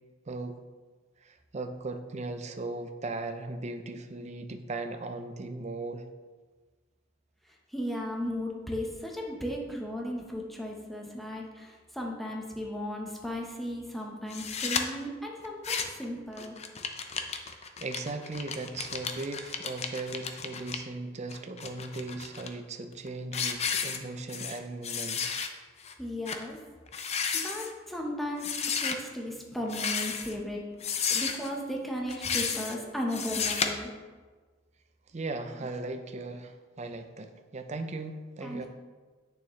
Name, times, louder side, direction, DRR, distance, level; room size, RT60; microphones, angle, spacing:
voice 1, 0.3-0.6 1.2-6.0 17.3-25.3 35.1-38.7, right 2 dB, 35° right, 7 dB, 0.5 m, -38 dB
voice 2, 7.7-16.6 26.0-26.6 27.3-28.5 28.8-30.6 31.0-33.9 38.4-38.7, equal, ahead, -1 dB, 0.9 m, -36 dB
sound 1, 14.3-14.8 15.4-16.0 16.4-20.8 21.3-22.5 22.9-23.1 23.3-24.6 24.8-25.5 25.8-25.9 26.3-26.4 26.9-27.7 28.4-29.0 29.7-30.4 30.8-31.5 32.1-32.8 33.1-33.7, left 6 dB, 35° left, 0.5 m, -32 dB
8.5 x 6.8 x 3.2 m, 1.4 s
head